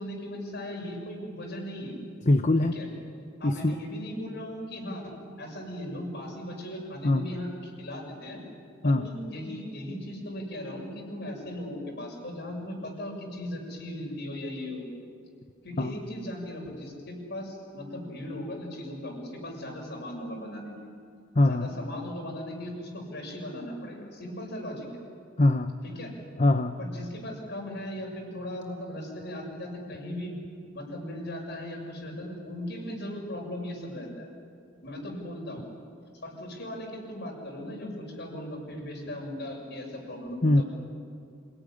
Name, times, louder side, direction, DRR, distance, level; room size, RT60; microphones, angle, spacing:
voice 1, 0.0-2.0 2.7-2.9 3.4-5.1 5.4-8.4 8.8-14.8 15.6-20.9 21.4-25.0 25.8-26.1 26.8-30.3 30.7-34.3 34.8-35.7 36.2-40.6, left 1 dB, 60° left, 0 dB, 6.9 m, -38 dB
voice 2, 2.3-2.7 3.4-3.7 7.0-7.3 8.8-9.1 15.8-15.9 21.3-21.7 25.4-25.7 26.4-26.8 40.4-40.6, left 2 dB, 40° left, 8 dB, 0.8 m, -22 dB
27.0 x 18.0 x 10.0 m, 2.4 s
head